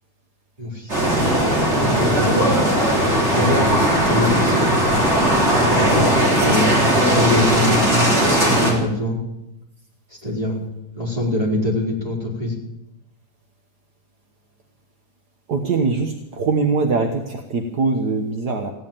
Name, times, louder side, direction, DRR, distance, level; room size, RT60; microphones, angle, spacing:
voice 1, 0.6-1.1 1.8-2.7 3.3-3.7 4.0-4.8 5.6-6.7 7.1-7.9 8.4-9.2 10.1-10.5 10.9-12.6, left 1 dB, 20° right, -3 dB, 4.7 m, -24 dB
sound 1, 0.9-8.7, right 1 dB, 40° right, 3.9 m, -18 dB
voice 2, 15.5-18.7, right 4 dB, 65° right, 3 dB, 1.7 m, -22 dB
16.5 x 9.9 x 8.9 m, 0.90 s
omnidirectional pair, 1.9 m